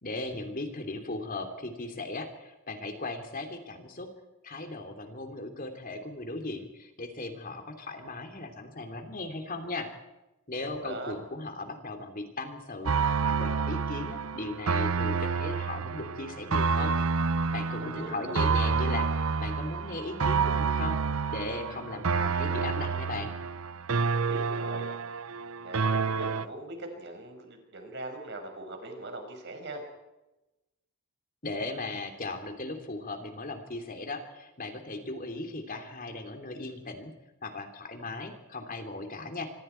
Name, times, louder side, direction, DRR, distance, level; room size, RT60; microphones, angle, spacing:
voice 1, 0.0-4.1 4.4-9.9 10.5-16.9 17.5-21.0 21.3-23.3 31.4-37.1 37.4-39.5, left 2 dB, 40° left, 5 dB, 3.1 m, -37 dB
voice 2, 10.7-11.2 17.8-18.4 24.1-24.9 25.6-29.8, right 2 dB, 55° right, 4 dB, 5.5 m, -41 dB
sound 1, 12.9-26.5, right 5 dB, 80° right, 0.8 m, -29 dB
26.0 x 25.0 x 4.6 m, 1.0 s
head